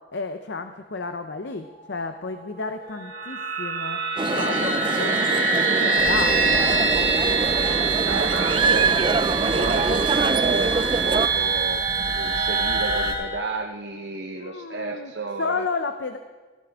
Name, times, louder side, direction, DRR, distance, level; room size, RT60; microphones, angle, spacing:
voice 1, 0.1-4.0 4.3-6.7 14.4-15.1 15.4-16.2, left 4 dB, 60° left, 8 dB, 0.6 m, -32 dB
sound 1, 2.6-13.1, right 4 dB, 85° right, 2.7 m, -24 dB
sound 2, 4.2-11.3, right 4 dB, 25° right, 0.4 m, -25 dB
Fire, 6.0-13.1, equal, 40° left, 3.2 m, -36 dB
voice 2, 8.1-11.8 12.1-15.7, right 3 dB, 60° right, 2 dB, 0.9 m, -31 dB
17.5 x 15.5 x 3.5 m, 1.4 s
head